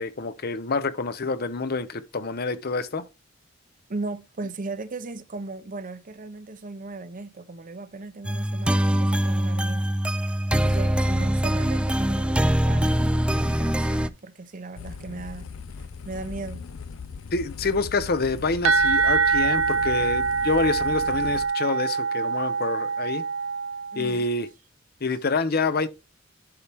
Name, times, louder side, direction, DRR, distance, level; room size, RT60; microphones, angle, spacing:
voice 1, 0.0-3.1 17.3-23.3 24.0-24.5 25.0-25.9, left 3 dB, 50° left, 0.8 m, -27 dB
voice 2, 3.9-10.0 10.5-15.5 16.0-16.7 23.9-24.2, right 3 dB, 40° right, 0.7 m, -37 dB
sound 1, 8.2-14.1, right 1 dB, 5° right, 0.4 m, -23 dB
sound 2, 14.8-21.4, left 5 dB, 85° left, 0.5 m, -39 dB
sound 3, 18.6-24.2, right 5 dB, 80° right, 0.7 m, -24 dB
11.5 x 4.4 x 3.5 m
head